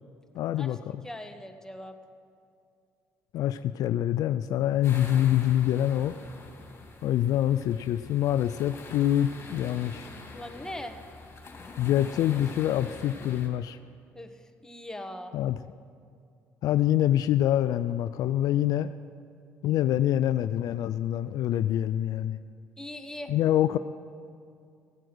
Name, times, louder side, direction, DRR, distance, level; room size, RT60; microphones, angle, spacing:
voice 1, 0.4-1.0 3.3-6.1 7.0-10.1 11.8-13.8 15.3-15.6 16.6-18.9 19.6-22.4 23.3-23.8, left 12 dB, 60° left, 13 dB, 0.3 m, -25 dB
voice 2, 1.0-2.0 10.3-11.0 14.1-14.4 14.6-15.3 22.8-23.3, left 1 dB, 10° left, 6 dB, 1.3 m, -40 dB
sound 1, 4.8-13.5, left 3 dB, 35° left, 2.8 m, -45 dB
15.5 x 9.1 x 6.1 m, 2.4 s
hypercardioid pair, 60°, 7 cm